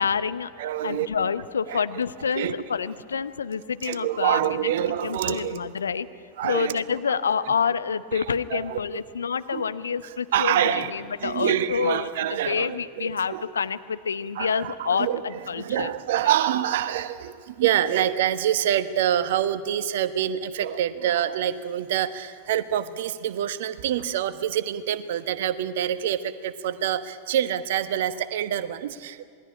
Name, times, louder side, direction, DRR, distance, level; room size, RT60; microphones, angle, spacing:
voice 1, 0.0-0.5 0.8-4.7 5.0-6.1 6.4-15.9, left 6 dB, 70° left, 13 dB, 0.9 m, -28 dB
voice 2, 0.6-1.1 1.7-1.8 2.3-2.5 3.8-5.6 6.4-6.7 8.1-8.2 8.5-8.8 9.5-9.7 10.3-10.9 11.2-13.4 14.3-29.2, right 11 dB, 55° right, 13 dB, 1.1 m, -26 dB
27.0 x 19.5 x 9.9 m, 2.2 s
figure-of-eight pair, 90°, 0 cm